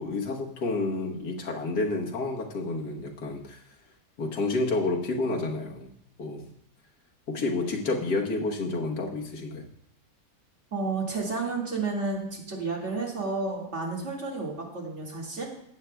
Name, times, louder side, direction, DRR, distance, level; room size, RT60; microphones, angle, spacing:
voice 1, 0.0-3.6 4.2-5.9 6.2-6.5 7.3-9.6, left 2 dB, 70° left, -1 dB, 1.8 m, -29 dB
voice 2, 10.7-15.4, right 3 dB, 40° right, -3 dB, 2.3 m, -31 dB
14.0 x 8.7 x 2.3 m, 0.73 s
omnidirectional pair, 1.8 m